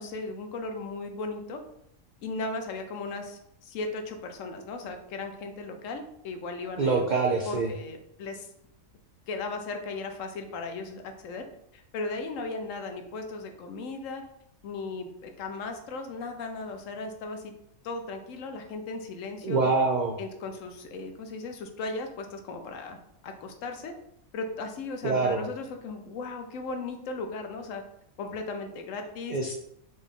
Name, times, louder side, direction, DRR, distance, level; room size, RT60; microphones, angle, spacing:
voice 1, 0.0-1.6 2.2-7.1 7.4-8.5 9.3-11.5 11.7-14.3 14.6-17.5 17.8-19.7 20.2-23.0 23.2-23.9 24.3-27.8 28.2-29.4, left 3 dB, 70° left, 5 dB, 1.0 m, -36 dB
voice 2, 6.8-7.7 19.4-20.2 25.0-25.4 29.3-29.5, right 4 dB, 85° right, 3 dB, 0.4 m, -25 dB
4.1 x 3.4 x 3.7 m, 0.75 s
omnidirectional pair, 1.4 m